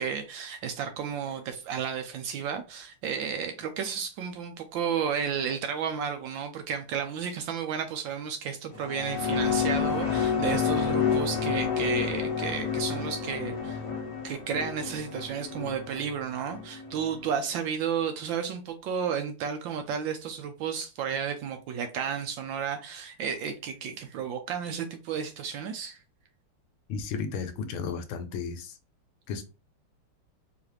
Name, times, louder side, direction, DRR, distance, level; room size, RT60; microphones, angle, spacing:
voice 1, 0.0-13.8 14.2-26.0, right 7 dB, 75° right, 1.2 m, -32 dB
sound 1, 8.7-17.4, left 6 dB, 40° left, 0.4 m, -29 dB
voice 2, 26.9-28.7 29.3-29.4, left 5 dB, 75° left, 1.4 m, -33 dB
4.0 x 3.1 x 3.0 m
omnidirectional pair, 2.4 m